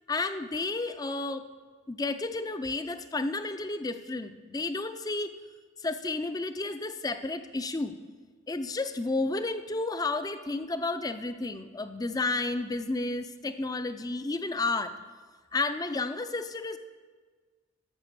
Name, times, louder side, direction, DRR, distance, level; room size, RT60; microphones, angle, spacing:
voice 1, 0.1-1.5 1.9-5.4 5.8-8.0 8.5-15.0 15.5-16.8, left 3 dB, 20° left, 11 dB, 0.5 m, -31 dB
11.5 x 6.8 x 6.8 m, 1.5 s
head